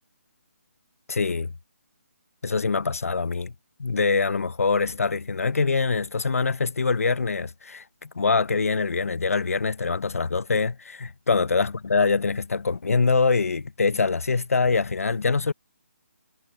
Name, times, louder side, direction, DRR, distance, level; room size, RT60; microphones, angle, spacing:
voice 1, 1.1-1.5 2.4-3.5 3.8-15.5, left 4 dB, 85° left, 0.8 m, -24 dB
hypercardioid pair, 170°, 8 cm